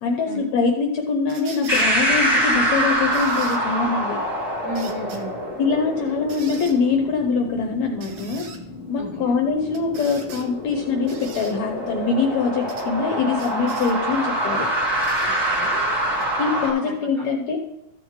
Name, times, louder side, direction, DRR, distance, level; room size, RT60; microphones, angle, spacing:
voice 1, 0.0-4.2 5.6-8.5 8.9-14.7 16.4-17.6, left 4 dB, 75° left, 2 dB, 1.7 m, -23 dB
sound 1, 1.3-1.9 3.1-3.6 4.7-5.2 6.3-6.8 8.0-8.6 9.7-10.5 11.1-11.5 12.7-12.9 13.4-14.0 15.0-15.3 16.2-16.3, right 5 dB, 65° right, 2.2 m, -41 dB
sound 2, 1.7-16.7, right 1 dB, 10° right, 1.9 m, -25 dB
voice 2, 4.6-5.4 9.0-9.4 15.3-15.8 16.8-17.3, right 1 dB, 80° right, -2 dB, 1.0 m, -34 dB
14.0 x 7.7 x 3.1 m, 0.95 s
omnidirectional pair, 4.1 m